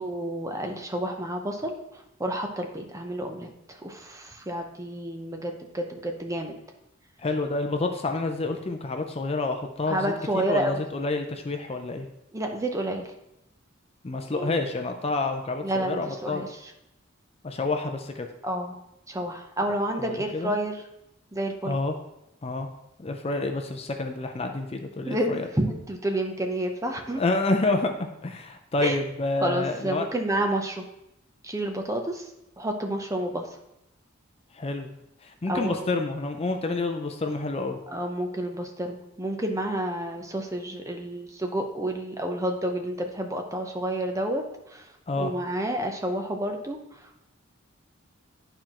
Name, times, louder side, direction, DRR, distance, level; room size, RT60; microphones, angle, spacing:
voice 1, 0.0-6.6 9.9-10.8 12.3-13.1 14.3-14.7 15.6-16.7 18.4-18.8 19.1-20.8 21.3-21.8 25.1-27.2 28.8-29.0 29.4-30.8 31.4-32.3 32.6-33.5 35.5-35.9 37.9-47.3, right 1 dB, 15° right, 4 dB, 0.7 m, -30 dB
voice 2, 7.2-12.1 14.0-16.4 17.4-18.3 20.0-20.5 21.6-22.0 22.4-22.7 23.0-25.5 27.2-30.1 34.5-34.9 35.2-37.8 45.1-45.3, left 2 dB, 30° left, 5 dB, 0.5 m, -28 dB
11.0 x 4.4 x 3.0 m, 0.84 s
head